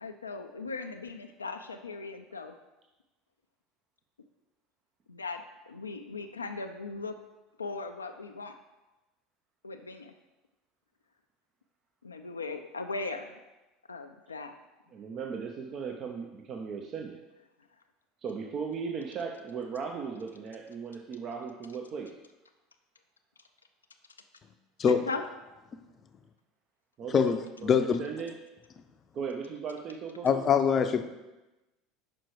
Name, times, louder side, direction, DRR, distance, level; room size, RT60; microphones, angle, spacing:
voice 1, 0.0-2.5 5.1-7.1 7.6-8.5 9.6-10.1 12.0-13.4 13.9-14.6 24.9-25.2, left 3 dB, 90° left, 6 dB, 0.3 m, -38 dB
voice 2, 14.9-17.2 18.2-22.1 27.0-27.4 27.6-28.3 29.1-30.3, right 6 dB, 45° right, 2 dB, 0.6 m, -37 dB
voice 3, 27.1-28.0 30.2-31.0, left 7 dB, 35° left, 9 dB, 0.5 m, -24 dB
6.0 x 4.6 x 4.7 m, 1.0 s
hypercardioid pair, 75°, 0 cm